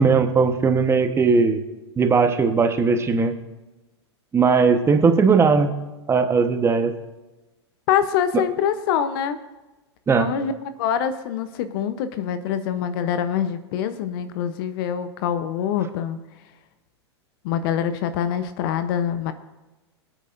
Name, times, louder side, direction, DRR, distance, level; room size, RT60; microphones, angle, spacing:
voice 1, 0.0-1.6 2.0-3.3 4.3-5.7 6.1-6.9 10.1-10.3, right 5 dB, 20° right, 7 dB, 1.1 m, -18 dB
voice 2, 7.9-9.4 10.2-16.2 17.4-19.3, left 9 dB, 55° left, 11 dB, 0.8 m, -25 dB
23.0 x 9.0 x 2.6 m, 1.1 s
hypercardioid pair, 100°, 14 cm